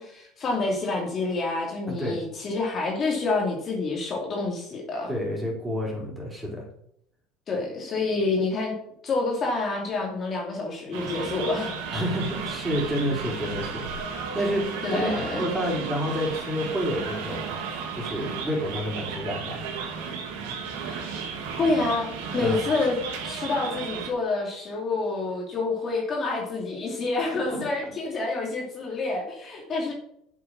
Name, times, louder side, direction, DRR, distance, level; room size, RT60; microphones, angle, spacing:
voice 1, 0.0-5.1 7.5-8.8 9.0-11.7 14.8-15.5 20.8-21.1 21.6-23.0 23.2-29.9, left 3 dB, 35° left, 0 dB, 2.7 m, -28 dB
voice 2, 1.9-2.2 5.1-6.7 11.9-17.5 17.9-19.6 22.4-22.6 27.4-27.7, equal, 10° right, -3 dB, 4.3 m, -29 dB
sound 1, 10.9-24.1, right 5 dB, 90° right, 2.7 m, -34 dB
7.9 x 7.5 x 6.3 m, 0.73 s
cardioid pair, 135°, 0 cm